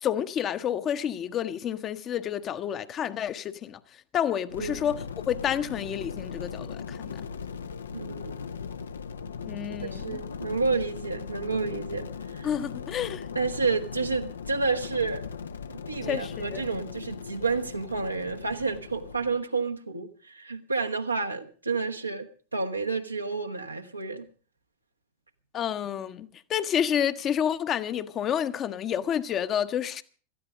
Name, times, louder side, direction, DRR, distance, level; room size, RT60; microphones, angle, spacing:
voice 1, 0.0-3.8 4.1-7.2 9.5-10.2 12.4-13.3 16.0-16.6 25.5-30.0, left 9 dB, 30° left, 0.9 m, -29 dB
sound 1, 4.5-19.4, left 6 dB, 70° left, 0.7 m, -38 dB
voice 2, 7.9-8.3 9.9-12.5 13.3-15.2 15.7-24.3, right 4 dB, 85° right, 1.3 m, -30 dB
17.5 x 13.5 x 4.9 m
figure-of-eight pair, 90°, 0 cm